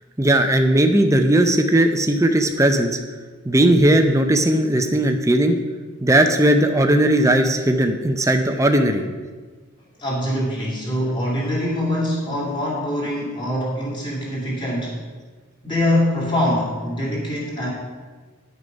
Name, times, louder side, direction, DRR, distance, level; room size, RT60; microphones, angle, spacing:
voice 1, 0.2-3.0 3.5-5.6 6.0-9.0, right 1 dB, 15° right, 6 dB, 0.6 m, -17 dB
voice 2, 10.0-15.0 15.6-17.7, left 1 dB, 20° left, -5 dB, 2.6 m, -23 dB
10.5 x 6.6 x 5.2 m, 1.4 s
head